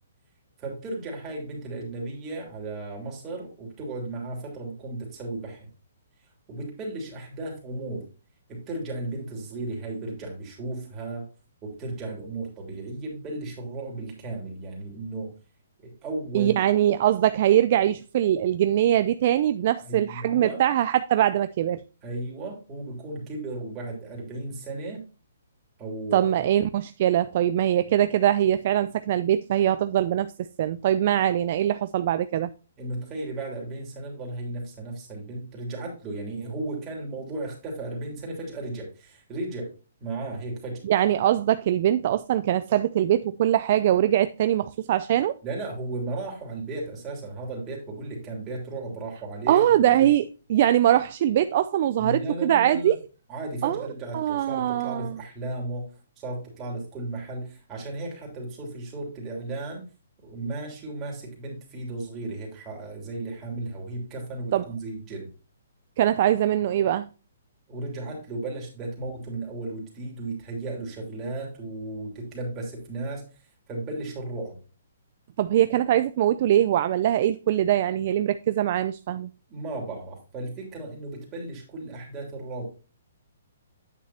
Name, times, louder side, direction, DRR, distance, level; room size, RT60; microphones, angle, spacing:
voice 1, 0.6-5.7 6.5-8.0 8.5-11.2 11.6-15.3 15.8-16.5 19.8-20.6 22.0-25.0 25.8-26.4 32.8-39.7 40.0-40.8 45.4-50.1 52.0-52.9 53.3-55.9 56.2-59.8 60.2-65.3 67.7-73.2 73.7-74.6 79.5-82.6, right 2 dB, 20° right, 3.2 m, -35 dB
voice 2, 16.3-21.8 26.1-32.5 40.8-45.3 49.5-53.0 53.6-53.8 54.1-55.2 64.5-64.6 66.0-67.1 75.4-79.3, right 11 dB, 45° right, 0.4 m, -22 dB
9.0 x 6.1 x 2.9 m
hypercardioid pair, 160°, 0 cm